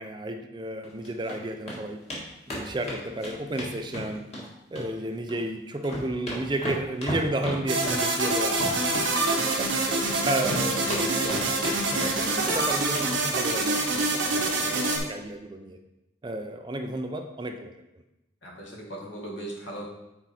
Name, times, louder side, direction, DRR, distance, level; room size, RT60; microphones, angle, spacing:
voice 1, 0.0-2.0 2.5-4.2 4.7-8.6 9.2-11.6 12.2-15.8 16.2-17.7, right 1 dB, 25° right, 6 dB, 0.4 m, -32 dB
sound 1, 0.8-1.4 1.7-1.8 2.1-2.2 2.5-4.4 4.7-5.4 5.7-10.2 10.5-11.7 12.0-12.6 12.9-13.1 13.4-13.6 13.9-14.0 14.3-14.4, equal, 35° left, 1.5 m, -35 dB
sound 2, 7.7-15.0, right 2 dB, 80° right, 1.2 m, -26 dB
voice 2, 11.6-12.0 14.2-14.7 18.4-19.8, right 1 dB, 70° left, -2 dB, 1.8 m, -39 dB
6.2 x 4.6 x 4.2 m, 0.92 s
head